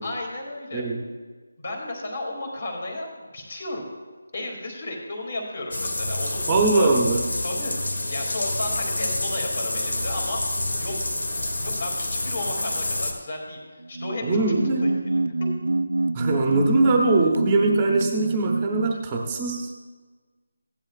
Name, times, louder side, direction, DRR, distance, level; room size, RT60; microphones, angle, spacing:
voice 1, 0.0-0.8 1.6-3.9 4.3-6.9 7.4-10.4 10.8-11.0 11.6-13.6 13.9-15.2, left 2 dB, 35° left, 1 dB, 2.4 m, -33 dB
sound 1, 5.7-13.1, left 2 dB, 75° left, 2.2 m, -28 dB
voice 2, 6.5-7.2 14.2-14.9 16.1-19.7, right 2 dB, 10° right, 1 dB, 0.9 m, -22 dB
sound 2, 13.8-19.1, right 2 dB, 60° right, 0.4 m, -26 dB
16.5 x 11.0 x 2.4 m, 1.4 s
figure-of-eight pair, 180°, 0 cm